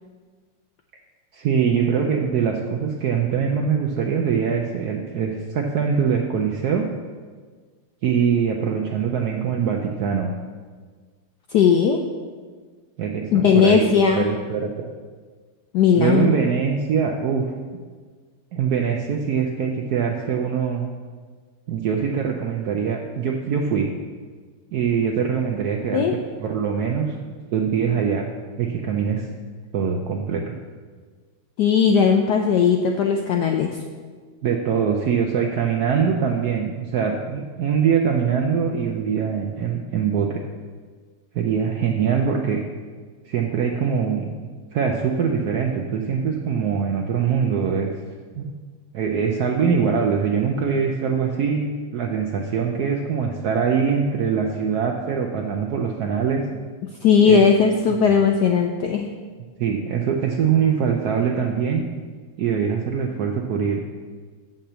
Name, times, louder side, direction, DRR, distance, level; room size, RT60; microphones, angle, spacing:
voice 1, 1.3-6.9 8.0-10.3 13.0-14.9 15.9-17.5 18.5-20.9 21.7-23.9 24.7-27.1 27.5-28.3 28.6-29.3 29.7-30.6 34.4-40.4 41.3-42.6 43.2-44.3 44.7-47.9 48.4-48.5 48.9-56.4 57.2-57.4 57.9-58.0 59.6-61.8 62.4-63.8, right 6 dB, 85° right, 1 dB, 0.8 m, -23 dB
voice 2, 11.5-12.0 13.3-14.3 15.7-16.4 25.9-26.1 31.6-33.8 57.0-59.1, left 6 dB, 85° left, 3 dB, 0.9 m, -17 dB
6.7 x 5.8 x 7.4 m, 1.5 s
omnidirectional pair, 2.4 m